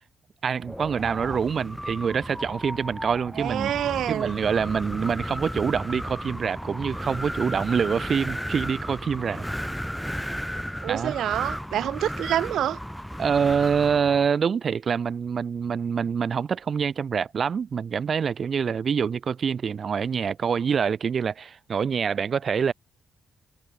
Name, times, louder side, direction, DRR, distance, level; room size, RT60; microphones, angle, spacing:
voice 1, 0.4-3.7 4.1-9.4 10.9-11.2 13.2-22.7, right 6 dB, 50° right, 1.6 m, -26 dB
Wind, 0.6-14.3, equal, ahead, 2.4 m, -34 dB
voice 2, 3.4-4.4 10.8-12.8, right 11 dB, 80° right, 3.0 m, -27 dB
cardioid pair, 85°, 0 cm